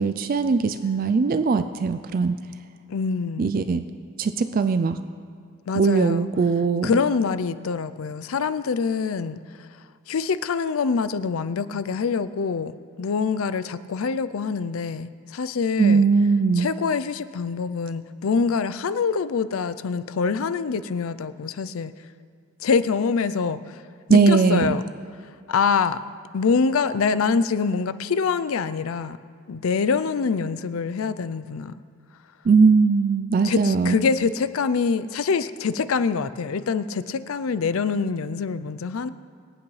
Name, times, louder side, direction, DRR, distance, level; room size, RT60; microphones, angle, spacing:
voice 1, 0.0-2.4 3.4-3.8 4.2-5.0 5.7-6.9 15.8-16.7 24.1-24.8 32.5-34.0, right 4 dB, 40° right, 10 dB, 0.3 m, -20 dB
voice 2, 2.9-3.5 5.7-6.3 6.8-9.4 10.1-12.7 13.0-16.0 16.6-21.9 22.6-23.8 24.1-24.8 25.5-26.0 26.3-29.2 29.5-31.7 33.4-39.1, left 5 dB, 70° left, 13 dB, 0.4 m, -25 dB
24.0 x 8.5 x 3.2 m, 2.2 s
head